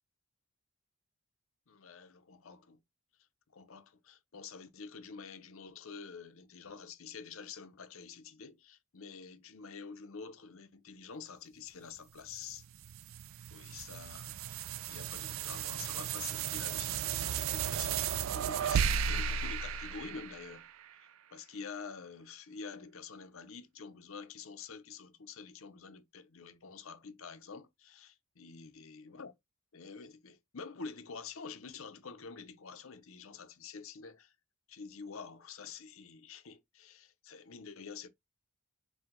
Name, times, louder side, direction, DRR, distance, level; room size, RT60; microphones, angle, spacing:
voice 1, 1.7-2.8 3.5-12.6 13.5-14.6 14.9-20.7 21.0-29.3 29.7-34.3 34.7-38.1, left 5 dB, 65° left, 0.7 m, -48 dB
sound 1, 12.3-20.9, right 7 dB, 65° right, 0.3 m, -35 dB
4.5 x 2.3 x 3.9 m
head